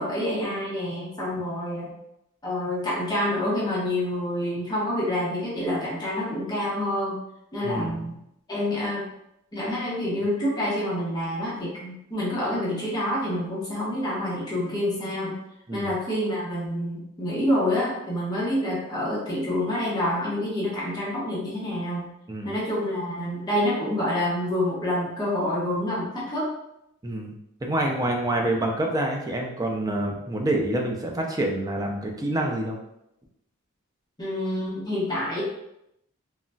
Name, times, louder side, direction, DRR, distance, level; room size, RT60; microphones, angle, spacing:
voice 1, 0.0-1.9 2.4-7.2 7.5-8.1 8.5-9.1 9.5-15.4 15.7-22.1 22.4-26.5 34.2-35.4, left 1 dB, 20° left, -7 dB, 0.7 m, -27 dB
voice 2, 7.6-8.1 15.7-15.9 22.3-22.5 27.0-27.3 27.6-32.8, right 1 dB, 20° right, 1 dB, 0.4 m, -27 dB
3.8 x 2.1 x 2.2 m, 0.81 s
head